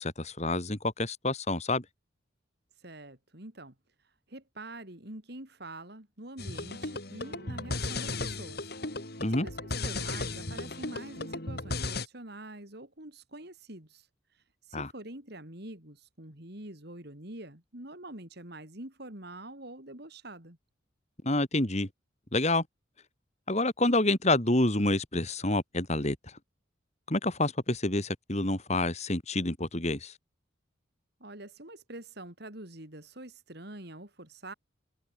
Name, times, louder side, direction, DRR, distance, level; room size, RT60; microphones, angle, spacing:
voice 1, 0.0-1.8 9.2-9.5 14.7-14.9 21.2-21.9 22.3-22.6 23.5-26.2 27.1-30.1, left 2 dB, 35° left, 3.1 m, -28 dB
voice 2, 2.8-3.7 4.3-8.7 9.4-14.1 14.3-20.6 31.2-34.5, right 1 dB, 55° right, 4.0 m, -45 dB
sound 1, 6.4-12.1, left 2 dB, 50° left, 4.6 m, -35 dB
head